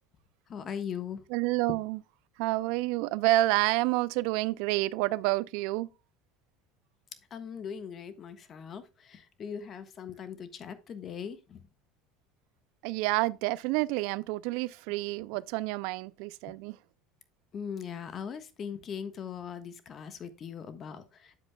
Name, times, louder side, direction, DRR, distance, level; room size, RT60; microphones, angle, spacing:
voice 1, 0.5-1.2 7.3-11.6 17.5-21.4, left 7 dB, 40° left, 1.3 m, -40 dB
voice 2, 1.3-2.0 2.4-5.9 12.8-16.8, right 19 dB, 70° right, 0.4 m, -29 dB
9.4 x 7.6 x 2.3 m
supercardioid pair, 95°, 0 cm